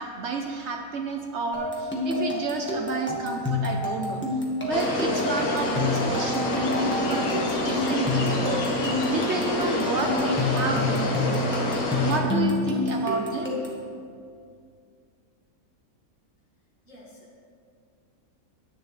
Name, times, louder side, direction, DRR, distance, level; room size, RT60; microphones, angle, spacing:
voice 1, 0.0-4.2 4.6-11.5 12.0-13.5, right 4 dB, 60° right, 3 dB, 0.9 m, -31 dB
sound 1, 1.5-13.8, left 3 dB, 10° left, 1.3 m, -28 dB
sound 2, 4.7-12.2, left 1 dB, 90° left, 1.5 m, -27 dB
voice 2, 16.9-17.4, left 1 dB, 60° left, -4 dB, 2.2 m, -50 dB
10.5 x 9.4 x 3.2 m, 2.3 s
omnidirectional pair, 1.5 m